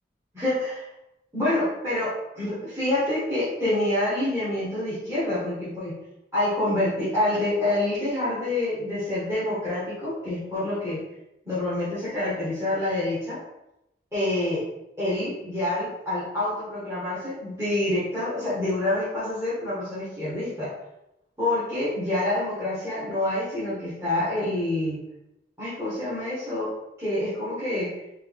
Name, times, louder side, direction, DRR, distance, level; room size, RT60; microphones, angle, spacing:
voice 1, 0.3-0.8 1.3-2.1 2.3-5.9 6.3-11.0 11.4-13.4 14.1-14.6 15.0-20.7 21.4-25.0 25.6-26.7 27.0-27.9, left 1 dB, 15° right, -12 dB, 1.5 m, -27 dB
4.5 x 2.7 x 3.6 m, 0.88 s
head